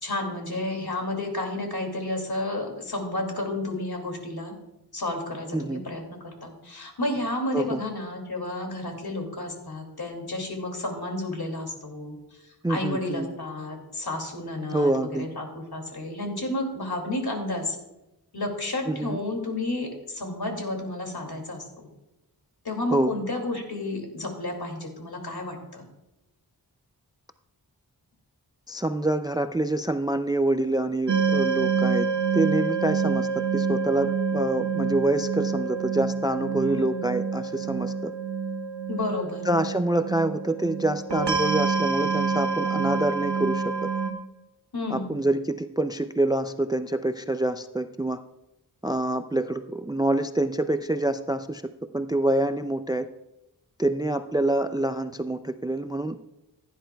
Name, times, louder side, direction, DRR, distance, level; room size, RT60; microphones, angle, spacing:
voice 1, 0.0-4.5 4.9-12.2 12.7-17.8 18.3-21.9 22.6-25.8 36.6-37.1 38.9-39.4 44.7-45.1, left 2 dB, 65° left, 3 dB, 2.4 m, -31 dB
voice 2, 12.6-13.3 14.7-15.3 18.9-19.2 22.9-23.1 28.7-32.1 32.3-38.1 39.4-43.6 44.9-48.2 48.8-51.6 51.9-53.1 53.8-56.2, right 1 dB, 10° right, 10 dB, 0.4 m, -26 dB
sound 1, 31.1-44.1, right 5 dB, 85° right, 1.3 m, -27 dB
16.0 x 10.0 x 2.3 m, 0.94 s
wide cardioid pair, 60°, 40 cm